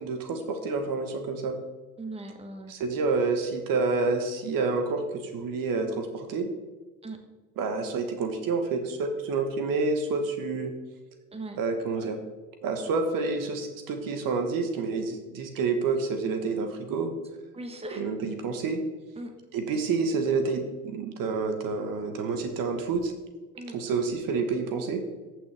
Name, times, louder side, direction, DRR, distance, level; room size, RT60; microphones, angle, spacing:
voice 1, 0.0-1.6 2.7-6.5 7.6-10.7 11.6-12.2 12.6-17.1 17.9-18.8 19.5-23.1 23.7-25.0, right 4 dB, 50° right, 6 dB, 1.5 m, -28 dB
voice 2, 2.0-2.7 7.0-7.2 11.3-11.6 17.5-18.0 19.2-19.3 23.5-23.7, right 2 dB, 15° right, 5 dB, 1.4 m, -38 dB
15.0 x 6.2 x 3.5 m, 1.3 s
figure-of-eight pair, 65°, 44 cm